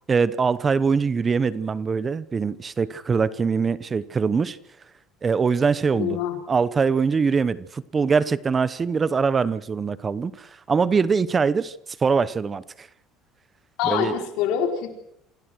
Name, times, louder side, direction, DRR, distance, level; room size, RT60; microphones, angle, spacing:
voice 1, 0.1-4.6 5.2-6.2 6.5-12.9 13.8-14.2, right 5 dB, 30° right, 18 dB, 0.9 m, -23 dB
voice 2, 5.9-6.4 13.8-15.0, left 9 dB, 75° left, 4 dB, 4.6 m, -25 dB
27.5 x 17.0 x 6.3 m, 0.75 s
supercardioid pair, 105°, 0 cm